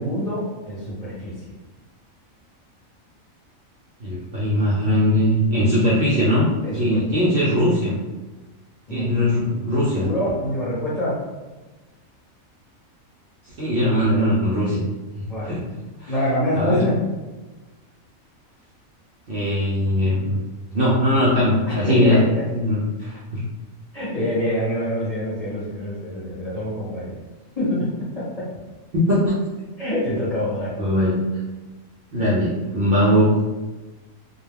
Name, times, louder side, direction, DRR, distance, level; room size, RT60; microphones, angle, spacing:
voice 1, 0.0-1.3 6.6-7.0 8.9-11.2 15.3-15.5 16.1-17.0 21.7-22.4 23.9-27.2 27.6-27.9 28.1-28.4 29.8-30.8, left 1 dB, 35° left, -9 dB, 0.8 m, -26 dB
voice 2, 4.0-6.5 6.8-8.0 8.9-10.1 13.4-14.8 15.1-15.6 16.0-16.1 16.5-16.8 19.3-20.4 20.7-22.2 22.5-23.5 28.9-29.4 30.8-31.2 32.1-33.4, equal, 60° right, -7 dB, 0.6 m, -20 dB
2.3 x 2.2 x 3.3 m, 1.2 s
omnidirectional pair, 1.4 m